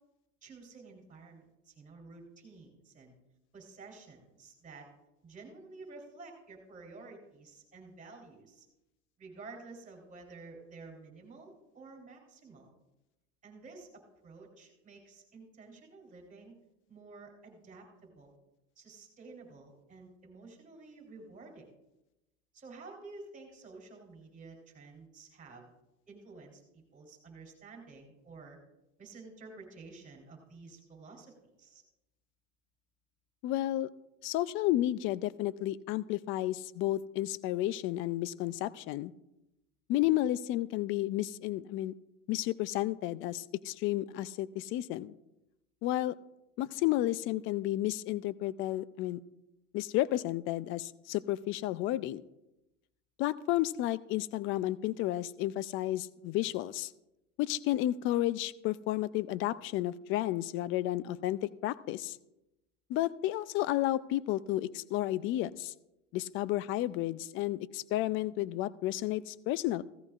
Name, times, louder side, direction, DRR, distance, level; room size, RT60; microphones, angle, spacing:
voice 1, 0.4-3.1 3.5-4.9 5.2-8.7 9.2-12.7 13.4-16.6 16.9-18.4 18.8-21.7 22.5-25.7 26.1-28.6 29.0-31.8, right 3 dB, 20° right, 1 dB, 3.5 m, -51 dB
voice 2, 33.4-33.9 34.2-39.1 39.9-41.9 42.3-45.1 45.8-46.2 46.6-49.2 49.7-52.2 53.2-56.9 57.4-62.2 62.9-65.7 66.1-69.8, left 15 dB, 35° left, 18 dB, 0.4 m, -32 dB
16.5 x 14.0 x 2.4 m, 0.93 s
supercardioid pair, 130°, 37 cm